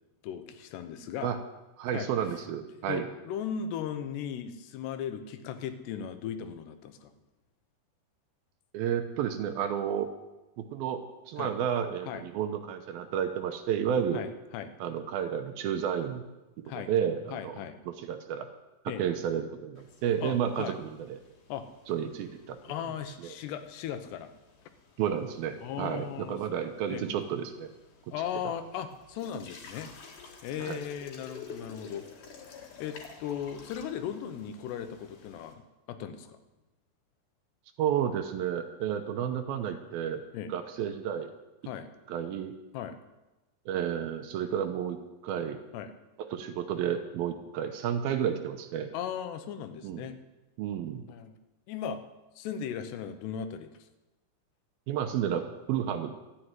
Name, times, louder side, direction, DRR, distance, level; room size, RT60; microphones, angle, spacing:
voice 1, 0.2-1.3 1.9-2.1 2.9-7.1 11.4-11.5 12.1-12.2 14.1-14.7 16.7-16.9 17.3-17.8 18.9-19.0 20.2-20.8 21.5-21.7 22.6-24.3 25.6-26.4 26.9-27.0 28.1-29.9 30.4-32.0 32.5-35.6 35.9-36.4 40.3-40.5 41.6-41.9 42.7-43.0 45.7-45.9 48.9-50.2 51.1-51.3 51.7-52.0 52.4-53.7, left 8 dB, 85° left, 9 dB, 3.1 m, -37 dB
voice 2, 1.8-3.1 8.7-10.1 10.6-14.2 14.8-16.2 16.9-17.6 17.9-18.5 19.0-21.2 21.9-22.6 23.2-23.3 25.0-27.7 30.6-30.8 37.8-40.2 40.5-41.3 42.1-42.5 43.7-45.6 46.2-48.9 49.8-50.1 50.6-51.0 54.9-56.2, right 9 dB, 75° right, 7 dB, 2.5 m, -31 dB
sound 1, 19.8-35.5, left 5 dB, 55° left, 2.9 m, -52 dB
12.5 x 9.5 x 9.0 m, 1.1 s
omnidirectional pair, 4.8 m